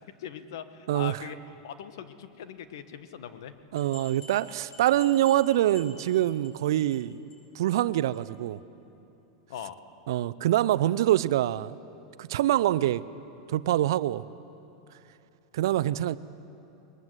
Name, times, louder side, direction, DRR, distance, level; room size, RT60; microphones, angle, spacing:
voice 1, 0.2-1.4 1.6-3.5 9.5-9.8, left 9 dB, 75° left, 11 dB, 1.3 m, -40 dB
voice 2, 0.9-1.2 3.7-7.2 7.5-8.6 10.1-11.8 12.2-13.0 13.5-14.2 15.5-16.2, right 13 dB, 75° right, 16 dB, 0.6 m, -25 dB
sound 1, 3.8-6.5 6.8-7.0 7.3-7.4 7.7-7.8 8.1-8.2, left 1 dB, 45° left, 7.5 m, -49 dB
21.5 x 21.0 x 8.1 m, 3.0 s
supercardioid pair, 130°, 2 cm